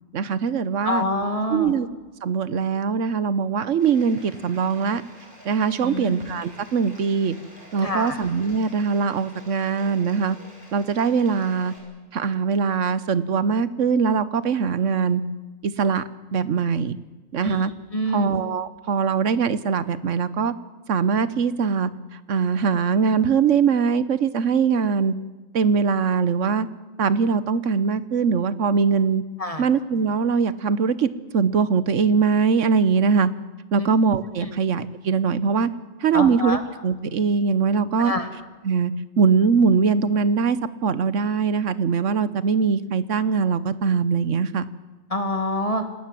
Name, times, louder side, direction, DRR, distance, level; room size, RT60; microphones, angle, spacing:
voice 1, 0.1-1.0 1.5-1.9 2.2-5.0 5.4-7.3 7.7-10.4 10.7-11.7 12.1-15.2 15.6-16.0 16.3-17.0 17.3-17.7 18.1-20.5 20.9-21.9 22.3-25.1 25.5-26.7 27.0-29.2 29.6-33.3 33.7-35.7 36.0-38.1 38.6-44.6, right 5 dB, 70° right, 16 dB, 1.3 m, -22 dB
voice 2, 0.8-1.7 5.8-6.1 7.8-8.2 17.4-17.6 17.9-18.3 29.4-29.7 33.8-33.9 34.4-34.5 36.1-36.6 38.0-38.3 45.1-45.8, left 1 dB, 25° left, 6 dB, 2.4 m, -26 dB
Bathtub (filling or washing), 3.8-11.8, equal, 40° right, 7.0 m, -48 dB
27.5 x 19.0 x 7.6 m, 1.2 s
omnidirectional pair, 1.4 m